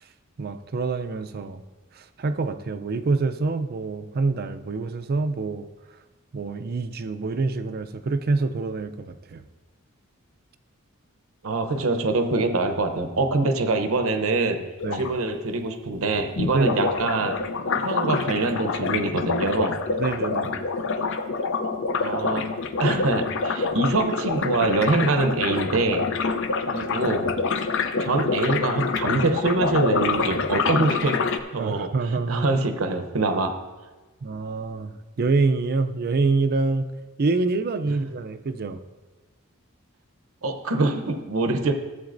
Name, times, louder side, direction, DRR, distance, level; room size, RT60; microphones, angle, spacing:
voice 1, 0.4-1.6 2.0-5.7 6.3-9.5 14.8-15.1 16.5-16.9 20.0-20.7 31.6-32.4 34.2-34.9 35.2-36.8 37.2-38.8, right 3 dB, 45° right, 9 dB, 0.5 m, -26 dB
voice 2, 11.4-14.6 14.9-19.8 22.0-22.5 22.8-26.1 26.7-27.4 28.0-31.2 31.5-31.9 32.3-33.6 37.9-38.0 40.4-41.7, right 3 dB, 70° right, 8 dB, 0.8 m, -24 dB
sound 1, 14.8-15.1 16.4-31.4, left 4 dB, 60° left, 0.6 m, -26 dB
14.5 x 8.0 x 2.6 m, 1.2 s
head